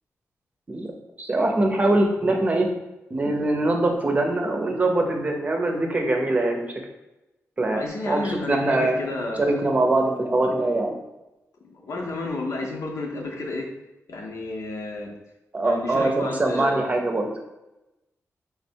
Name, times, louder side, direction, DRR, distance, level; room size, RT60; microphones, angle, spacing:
voice 1, 1.2-2.7 3.1-6.7 7.6-9.0 9.4-10.9 15.5-17.3, right 2 dB, 30° right, 2 dB, 0.7 m, -23 dB
voice 2, 7.7-9.6 11.6-13.7 14.1-15.1 15.6-17.0, left 2 dB, 75° left, 0 dB, 0.9 m, -31 dB
3.6 x 3.2 x 4.5 m, 0.99 s
wide cardioid pair, 145°, 5 cm